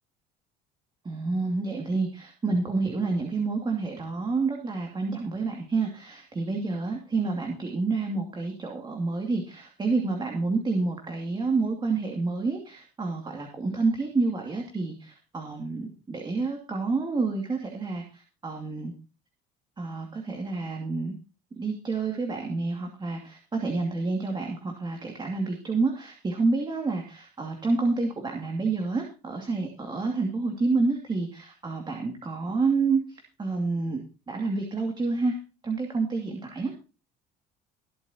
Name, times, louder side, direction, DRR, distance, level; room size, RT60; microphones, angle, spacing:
voice 1, 1.0-18.9 19.8-21.1 21.6-34.0 34.3-35.4 35.6-36.7, right 3 dB, 25° right, 2 dB, 2.4 m, -28 dB
23.0 x 8.6 x 2.9 m, 0.34 s
cardioid pair, 110°, 19 cm